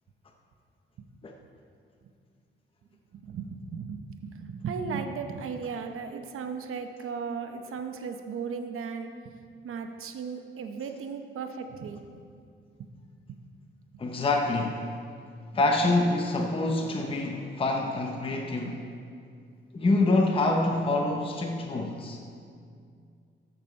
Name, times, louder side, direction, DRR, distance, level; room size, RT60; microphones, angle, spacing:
voice 1, 3.1-9.1 9.6-12.0 12.8-12.9 13.3-13.4, right 5 dB, 90° right, 6 dB, 0.8 m, -36 dB
voice 2, 14.0-15.0 15.5-18.8 19.7-22.2, left 2 dB, 25° left, 2 dB, 0.6 m, -26 dB
13.0 x 6.9 x 4.3 m, 2.3 s
wide cardioid pair, 160°, 21 cm